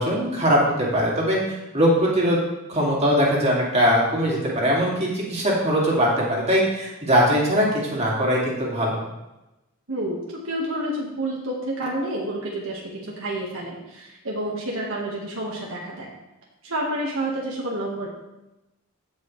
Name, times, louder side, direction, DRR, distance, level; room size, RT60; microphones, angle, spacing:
voice 1, 0.0-2.4 2.7-9.0, equal, 30° right, -4 dB, 2.5 m, -21 dB
voice 2, 9.9-16.1 16.6-18.1, right 1 dB, 65° right, -3 dB, 1.5 m, -29 dB
15.5 x 5.5 x 3.2 m, 0.96 s
head